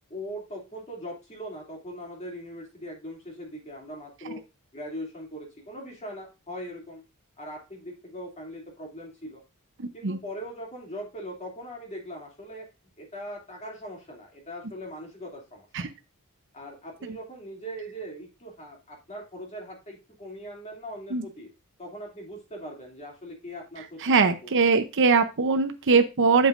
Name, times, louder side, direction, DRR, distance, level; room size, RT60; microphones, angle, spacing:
voice 1, 0.1-4.4 4.7-7.0 7.4-9.4 9.9-12.6 13.0-15.9 16.5-21.5 21.8-24.6, equal, 30° left, -1 dB, 2.6 m, -40 dB
voice 2, 9.8-10.2 15.7-15.9 21.1-21.2 24.0-26.5, right 4 dB, 60° right, 8 dB, 0.7 m, -21 dB
7.9 x 7.1 x 2.5 m, 0.27 s
head